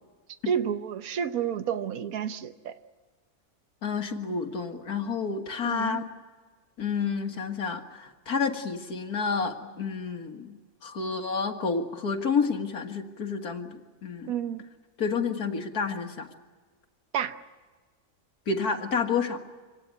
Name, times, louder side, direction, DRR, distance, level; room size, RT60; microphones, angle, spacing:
voice 1, 0.5-2.7 5.6-6.0 14.3-14.6 17.1-17.3, right 8 dB, 70° right, 9 dB, 1.4 m, -30 dB
voice 2, 3.8-6.0 6.8-14.3 15.0-16.3 18.5-19.4, left 5 dB, 75° left, 5 dB, 2.2 m, -30 dB
26.0 x 17.5 x 9.3 m, 1.4 s
omnidirectional pair, 1.6 m